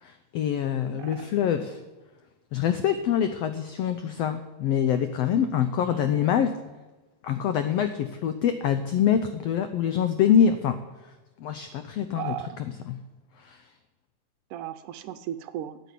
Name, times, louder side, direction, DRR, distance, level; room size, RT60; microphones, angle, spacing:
voice 1, 0.0-1.8 2.5-6.6 7.2-10.8 11.4-12.3 12.9-13.0 13.4-13.6, left 8 dB, 90° left, 9 dB, 1.4 m, -25 dB
voice 2, 0.9-1.4 5.8-6.3 12.1-12.6 14.5-15.8, right 11 dB, 80° right, 10 dB, 2.0 m, -36 dB
14.0 x 8.3 x 8.3 m, 1.2 s
omnidirectional pair, 3.8 m